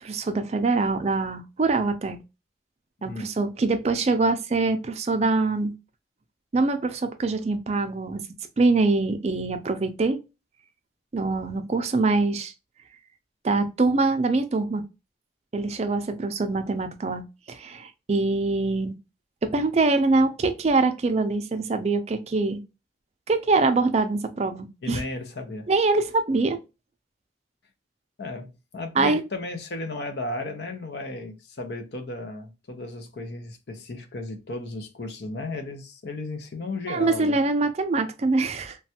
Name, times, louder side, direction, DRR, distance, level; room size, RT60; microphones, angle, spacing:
voice 1, 0.0-2.2 3.0-5.8 6.5-8.2 8.6-10.2 11.1-12.5 13.4-14.8 15.5-19.0 19.4-22.6 23.3-25.0 25.7-26.6 29.0-29.2 36.9-38.8, right 3 dB, 35° right, 0.4 m, -24 dB
voice 2, 24.8-25.7 28.2-37.4, left 2 dB, 65° left, 0.6 m, -34 dB
3.1 x 2.3 x 2.8 m
head